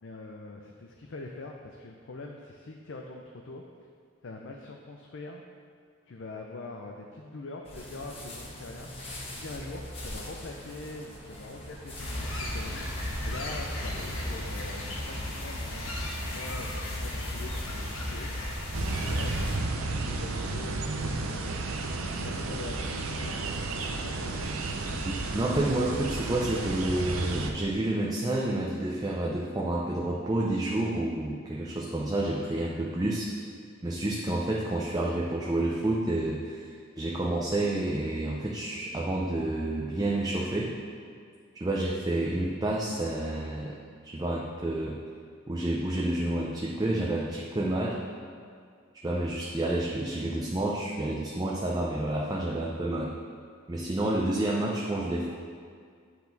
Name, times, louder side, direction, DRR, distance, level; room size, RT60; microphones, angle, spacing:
voice 1, 0.0-3.6 4.2-5.4 6.1-8.9 9.4-18.6 19.0-21.7 22.2-24.6, left 2 dB, 60° left, 1 dB, 0.5 m, -43 dB
sound 1, 7.6-15.3, left 1 dB, 30° left, 1.1 m, -43 dB
sound 2, 12.0-19.6, left 1 dB, 80° left, 1.3 m, -34 dB
sound 3, 18.7-27.5, right 3 dB, 90° right, 0.6 m, -32 dB
voice 2, 25.0-33.3 33.8-40.8 41.6-43.8 44.0-45.0 45.5-48.0 49.0-53.1 53.7-55.3, right 1 dB, 20° right, -3 dB, 0.5 m, -29 dB
9.5 x 4.6 x 4.0 m, 2.1 s
head